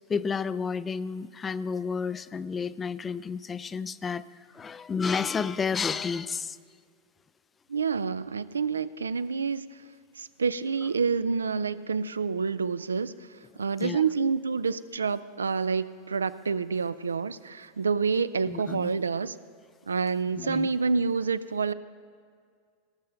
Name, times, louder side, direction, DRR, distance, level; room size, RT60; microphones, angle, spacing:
voice 1, 0.1-6.6 13.8-14.0 18.5-18.9 20.3-20.7, left 5 dB, 20° left, 16 dB, 0.3 m, -31 dB
voice 2, 7.7-9.6 10.2-13.1 13.6-19.3 19.9-21.7, right 5 dB, 75° right, 15 dB, 0.4 m, -28 dB
18.5 x 6.6 x 5.6 m, 2.1 s
figure-of-eight pair, 90°, 0 cm